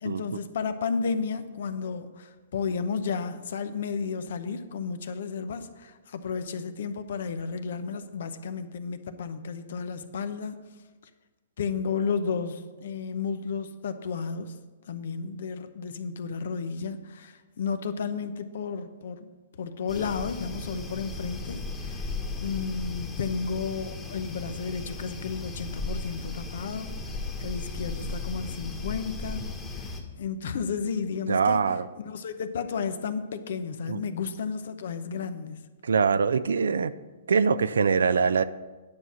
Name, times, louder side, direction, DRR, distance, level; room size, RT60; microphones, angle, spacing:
voice 1, 0.0-10.6 11.6-14.5 14.9-19.3 19.6-22.1 22.4-26.9 27.4-29.5 29.8-29.9 30.2-31.6 32.0-35.6, left 5 dB, 70° left, 11 dB, 0.8 m, -32 dB
sound 1, 19.9-30.0, left 3 dB, 15° left, 1.4 m, -36 dB
voice 2, 31.3-31.9 33.9-34.0 35.8-36.9 37.3-38.4, right 5 dB, 85° right, 16 dB, 0.4 m, -23 dB
9.6 x 5.6 x 6.1 m, 1.3 s
hypercardioid pair, 135°, 0 cm